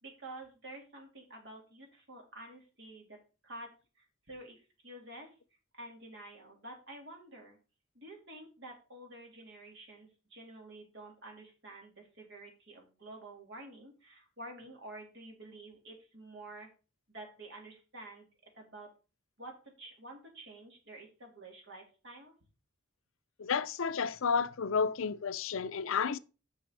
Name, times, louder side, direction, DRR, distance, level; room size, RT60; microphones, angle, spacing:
voice 1, 0.0-3.2 3.4-5.3 5.7-7.6 7.9-16.7 17.1-18.3 18.5-18.9 19.4-22.3, right 2 dB, 55° right, 3.2 m, -50 dB
voice 2, 23.4-26.2, left 6 dB, 70° left, 0.5 m, -31 dB
6.3 x 6.1 x 6.7 m
head